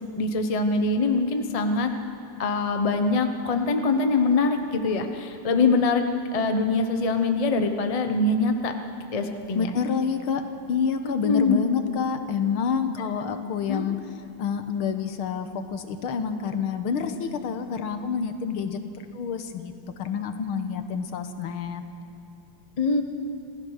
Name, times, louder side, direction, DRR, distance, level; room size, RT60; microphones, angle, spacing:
voice 1, 0.2-1.9 2.4-6.0 6.3-8.7 9.1-9.7 11.2-11.6 13.7-13.8 22.8-23.0, left 3 dB, 30° left, 6 dB, 0.6 m, -23 dB
voice 2, 9.5-10.4 10.7-14.0 14.4-19.7 20.0-21.8, left 6 dB, 75° left, 8 dB, 1.9 m, -28 dB
27.0 x 15.5 x 6.5 m, 2.6 s
omnidirectional pair, 2.4 m